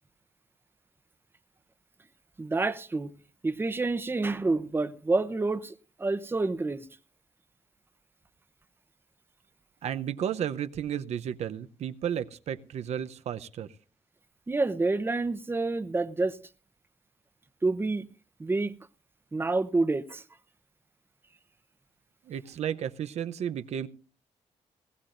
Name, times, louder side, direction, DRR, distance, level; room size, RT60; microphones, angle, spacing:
voice 1, 2.4-3.1 3.4-6.8 14.5-16.4 17.6-18.1 18.4-18.7 19.3-20.2, right 3 dB, 20° right, 0.9 m, -28 dB
voice 2, 9.8-13.8 22.2-23.9, right 9 dB, 75° right, 0.8 m, -33 dB
20.5 x 16.0 x 2.6 m
cardioid pair, 95°, 11 cm